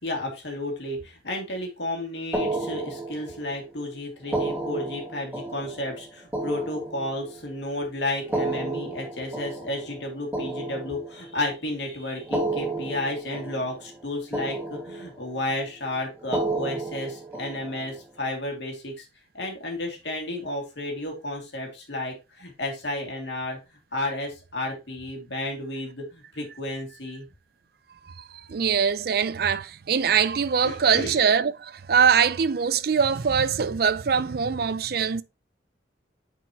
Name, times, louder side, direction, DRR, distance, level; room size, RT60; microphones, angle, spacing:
voice 1, 0.0-19.1 19.3-23.6 23.9-27.3 30.6-31.2, left 1 dB, 75° left, 2.2 m, -32 dB
sound 1, 2.3-3.6 4.2-7.5 8.2-11.5 12.2-14.1 14.3-15.4 16.2-18.0, right 2 dB, 10° right, 1.8 m, -32 dB
voice 2, 27.9-35.2, right 6 dB, 55° right, 0.5 m, -23 dB
9.4 x 4.6 x 2.9 m
head